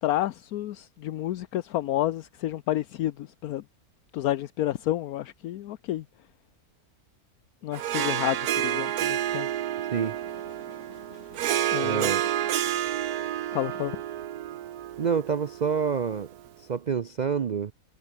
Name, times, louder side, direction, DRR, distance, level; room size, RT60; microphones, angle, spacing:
voice 1, 0.0-3.6 4.1-6.0 7.6-9.5 11.7-12.2 13.5-14.0, left 13 dB, 75° left, 1.2 m, -30 dB
Harp, 7.7-16.4, right 12 dB, 90° right, 1.4 m, -30 dB
sound 1, 9.8-12.9, left 2 dB, 50° left, 5.0 m, -52 dB
voice 2, 11.8-12.2 15.0-16.3 16.6-17.7, right 6 dB, 75° right, 0.4 m, -27 dB
omnidirectional pair, 1.6 m